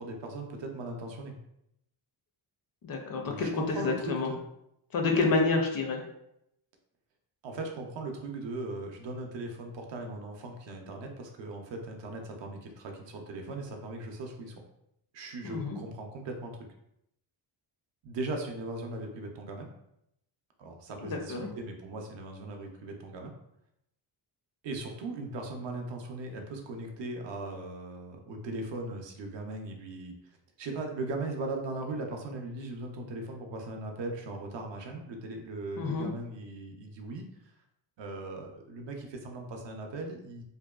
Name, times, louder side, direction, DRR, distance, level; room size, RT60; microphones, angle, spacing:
voice 1, 0.0-1.3 3.2-4.4 5.2-5.3 7.4-14.6 15.1-16.5 18.0-19.7 20.6-23.3 24.6-30.1 30.6-37.3 38.0-40.4, right 2 dB, 60° right, 2 dB, 0.6 m, -38 dB
voice 2, 2.8-4.3 4.9-6.0 15.4-15.8 21.0-21.5 35.8-36.1, left 3 dB, 45° left, 2 dB, 0.4 m, -28 dB
2.7 x 2.1 x 2.3 m, 0.79 s
cardioid pair, 105°, 49 cm